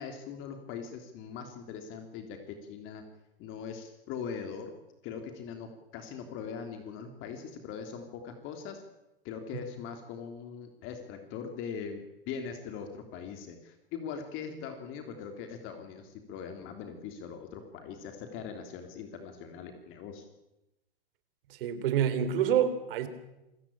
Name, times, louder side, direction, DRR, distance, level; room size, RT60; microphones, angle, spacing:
voice 1, 0.0-3.0 3.4-4.7 5.0-8.8 9.2-20.2, left 6 dB, 40° left, 6 dB, 3.4 m, -41 dB
voice 2, 21.5-23.1, right 9 dB, 65° right, 12 dB, 3.7 m, -27 dB
27.5 x 15.5 x 8.8 m, 0.95 s
hypercardioid pair, 120°, 30 cm